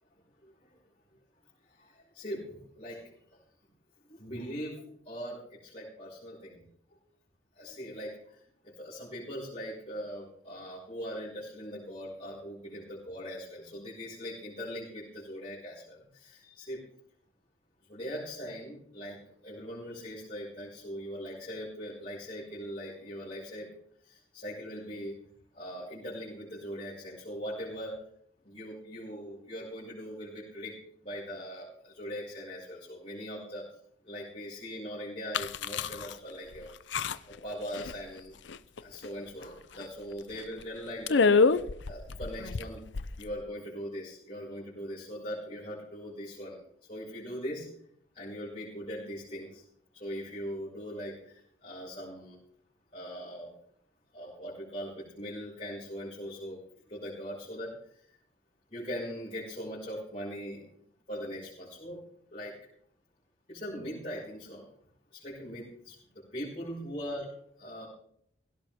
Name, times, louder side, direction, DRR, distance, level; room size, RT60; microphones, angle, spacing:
voice 1, 1.8-3.1 4.1-6.6 7.6-8.4 8.8-16.8 17.9-23.7 24.0-25.1 25.5-28.0 28.4-30.7 31.0-33.6 34.0-36.7 37.3-38.4 38.8-41.3 41.9-42.8 43.2-46.6 46.9-47.7 48.1-49.6 49.9-52.4 52.9-53.5 54.1-56.6 56.9-57.7 58.7-60.6 61.1-62.0 62.3-62.5 63.5-64.6 65.1-66.0 66.3-67.3 67.6-67.9, equal, 40° left, -9 dB, 5.8 m, -40 dB
sound 1, 35.3-36.1 36.5-36.6 36.9-37.4 37.7-38.2 38.5-39.1 39.4-39.5 39.8-39.9 40.4-40.6 41.1-43.4, left 4 dB, 75° left, 0.6 m, -27 dB
17.5 x 17.0 x 3.6 m, 0.68 s
head